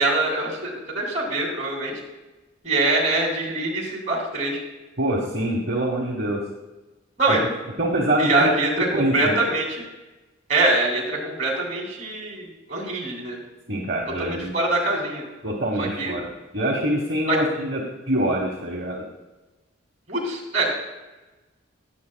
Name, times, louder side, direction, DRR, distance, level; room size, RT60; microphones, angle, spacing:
voice 1, 0.0-1.9 2.6-4.6 7.2-7.4 8.2-9.8 10.5-13.4 14.2-15.2 15.8-16.1 17.3-17.4 20.1-20.6, right 2 dB, 35° right, -1 dB, 2.8 m, -24 dB
voice 2, 5.0-6.4 7.3-7.5 7.8-8.5 8.9-9.4 13.7-14.5 15.4-17.8 18.1-19.0, right 1 dB, 50° right, -2 dB, 1.3 m, -25 dB
19.0 x 7.4 x 2.3 m, 1.1 s
head